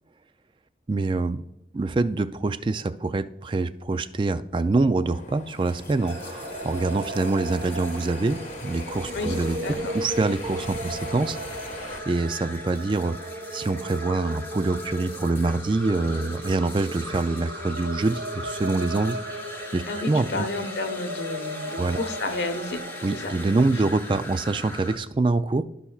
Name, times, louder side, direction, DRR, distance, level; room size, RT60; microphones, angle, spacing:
voice 1, 0.9-1.4 1.7-11.4 12.1-19.2 19.5-20.5 21.8-22.0 23.0-25.6, right 3 dB, 25° right, 12 dB, 0.3 m, -25 dB
sound 1, 5.1-12.0, left 2 dB, 45° left, 1.0 m, -41 dB
sound 2, 5.5-25.0, left 2 dB, 15° left, 0.8 m, -41 dB
sound 3, 6.0-23.5, right 1 dB, 85° right, 2.6 m, -36 dB
voice 2, 9.6-9.9 19.9-22.8 23.1-23.3, left 2 dB, 80° left, 7 dB, 1.1 m, -31 dB
16.0 x 5.6 x 2.4 m, 0.88 s
head